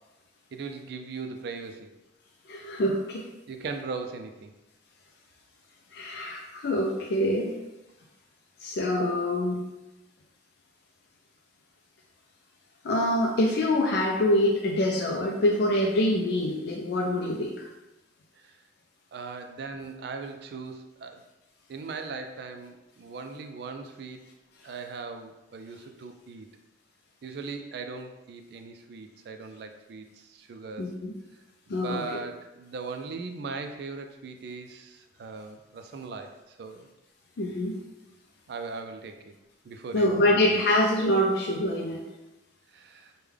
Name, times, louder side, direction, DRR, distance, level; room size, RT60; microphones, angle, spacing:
voice 1, 0.5-1.9 3.5-4.5 18.4-18.6 19.1-21.2 21.7-24.2 24.6-26.5 27.2-30.9 31.7-36.9 38.5-39.3 39.6-40.5 42.7-43.1, right 4 dB, 60° right, 6 dB, 0.3 m, -39 dB
voice 2, 2.5-3.3 5.9-7.6 8.6-9.6 12.8-17.5 30.8-31.1 31.7-32.2 37.4-37.8 39.9-42.0, left 1 dB, 60° left, -1 dB, 0.4 m, -25 dB
3.4 x 2.2 x 3.3 m, 1.0 s
head